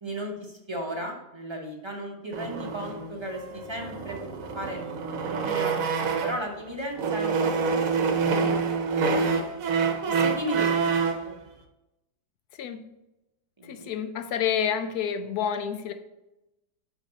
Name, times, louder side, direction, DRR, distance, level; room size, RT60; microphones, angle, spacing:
voice 1, 0.0-4.2 4.5-4.8 5.3-7.7 8.0-9.4 10.1-11.3 13.6-13.9, equal, 25° right, 0.7 m, -36 dB
sound 1, 2.3-6.5 6.9-11.3, right 5 dB, 60° right, 1.1 m, -27 dB
voice 2, 13.6-15.9, left 8 dB, 70° left, 1.0 m, -29 dB
6.3 x 5.2 x 4.0 m
omnidirectional pair, 1.8 m